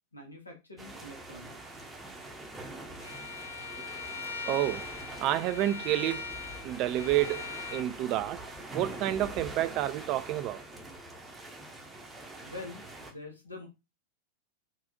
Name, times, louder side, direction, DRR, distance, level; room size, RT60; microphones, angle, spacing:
voice 1, 0.1-1.8 12.4-12.8 13.1-13.7, left 2 dB, 85° left, 1.0 m, -45 dB
sound 1, 0.8-13.1, right 2 dB, 10° right, 0.7 m, -44 dB
Bowed string instrument, 3.0-7.9, left 4 dB, 90° right, 0.9 m, -41 dB
voice 2, 4.4-4.9 5.2-8.4 8.7-10.6, right 13 dB, 40° right, 0.3 m, -30 dB
3.8 x 2.3 x 2.7 m
figure-of-eight pair, 90°, 0 cm